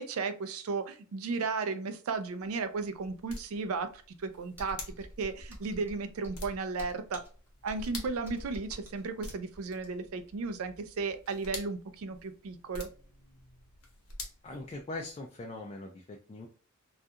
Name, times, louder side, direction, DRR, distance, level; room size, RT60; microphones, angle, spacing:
voice 1, 0.0-7.2 7.6-12.9, right 4 dB, 70° right, 9 dB, 0.4 m, -35 dB
sound 1, 2.2-15.3, left 3 dB, 80° left, 0.8 m, -49 dB
Computer keyboard, 4.5-10.2, equal, 10° right, 0.7 m, -47 dB
voice 2, 14.4-16.5, left 2 dB, 25° left, 1 dB, 0.3 m, -41 dB
2.4 x 2.3 x 2.7 m, 0.39 s
head